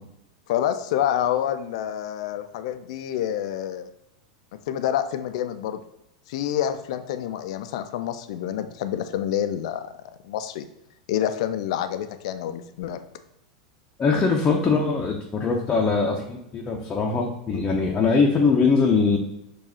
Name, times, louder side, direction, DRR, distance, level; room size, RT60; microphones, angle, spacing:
voice 1, 0.5-3.9 4.7-5.8 6.3-9.9 10.2-10.7 11.1-13.0, left 10 dB, 65° left, 10 dB, 0.3 m, -27 dB
voice 2, 14.0-19.2, left 4 dB, 25° left, -1 dB, 0.6 m, -22 dB
4.7 x 2.4 x 4.2 m, 0.83 s
hypercardioid pair, 100°, 4 cm